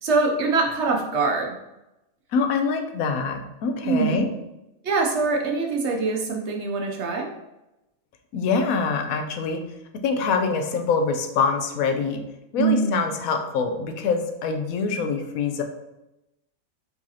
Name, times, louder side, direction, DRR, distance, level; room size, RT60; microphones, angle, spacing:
voice 1, 0.0-1.6 3.8-4.2 4.8-7.3 12.6-13.0, right 4 dB, 60° right, 2 dB, 0.8 m, -23 dB
voice 2, 2.3-4.3 8.3-9.6 10.0-12.2 12.5-15.6, left 5 dB, 80° left, 5 dB, 1.0 m, -24 dB
4.9 x 3.9 x 2.8 m, 0.92 s
omnidirectional pair, 1.5 m